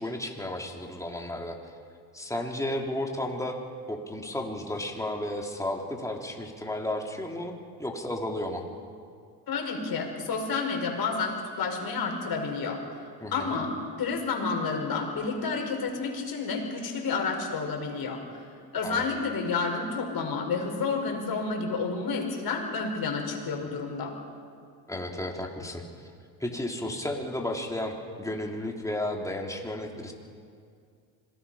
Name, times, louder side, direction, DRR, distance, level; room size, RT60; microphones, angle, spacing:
voice 1, 0.0-1.6 2.1-3.6 3.9-7.5 7.8-8.7 13.2-13.5 18.8-19.0 24.9-25.8 26.4-30.1, left 1 dB, 5° left, 0 dB, 3.5 m, -33 dB
voice 2, 9.5-13.0 13.3-13.7 14.0-18.5 18.7-24.1, left 4 dB, 50° left, 2 dB, 5.5 m, -30 dB
26.0 x 18.5 x 5.8 m, 2.3 s
supercardioid pair, 80°, 45 cm